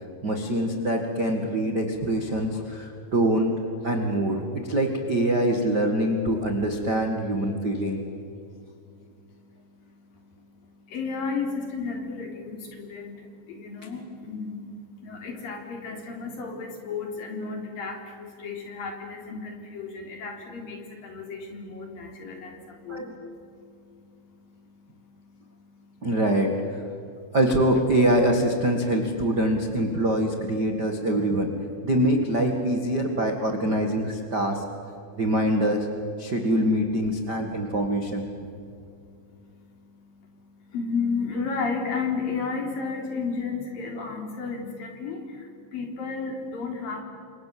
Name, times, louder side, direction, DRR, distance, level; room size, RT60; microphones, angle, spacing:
voice 1, 0.2-3.5 3.8-8.0 22.9-23.1 26.0-26.8 27.3-31.5 31.8-34.6 35.2-35.9 36.2-38.2, right 1 dB, 40° right, 3 dB, 1.6 m, -24 dB
voice 2, 10.9-13.2 13.5-22.5 22.9-23.0 40.7-45.2 45.7-47.0, left 4 dB, 55° left, 2 dB, 5.1 m, -32 dB
30.0 x 26.0 x 7.7 m, 2.5 s
omnidirectional pair, 5.0 m